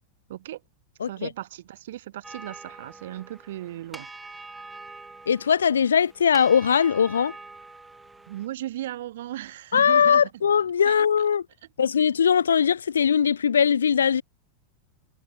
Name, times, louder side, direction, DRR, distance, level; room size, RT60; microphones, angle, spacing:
voice 1, 0.3-0.6 1.0-4.1 8.3-10.3 10.8-11.1, right 14 dB, 55° right, 2.0 m, -36 dB
sound 1, 2.2-8.5, right 3 dB, 10° right, 2.5 m, -44 dB
voice 2, 5.3-7.3 9.7-11.4 11.8-14.2, left 7 dB, 70° left, 0.6 m, -20 dB
figure-of-eight pair, 90°, 0 cm